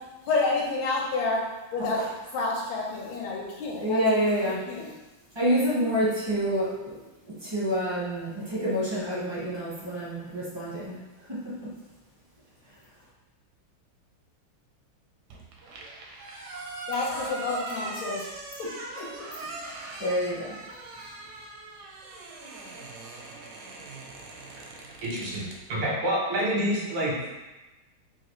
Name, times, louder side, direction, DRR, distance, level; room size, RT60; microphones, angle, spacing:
voice 1, 0.3-1.4 1.7-2.0 2.3-4.9 16.9-18.2 19.0-19.1, left 3 dB, 80° left, -3 dB, 1.5 m, -29 dB
voice 2, 3.8-4.6 5.3-6.9 7.4-11.0 11.3-11.4 20.0-20.5, equal, 30° right, -9 dB, 0.4 m, -27 dB
sound 1, 15.3-25.6, right 3 dB, 75° right, 1.0 m, -40 dB
voice 3, 25.0-27.3, equal, 90° right, -4 dB, 1.9 m, -28 dB
4.1 x 2.4 x 3.0 m, 1.1 s
omnidirectional pair, 2.3 m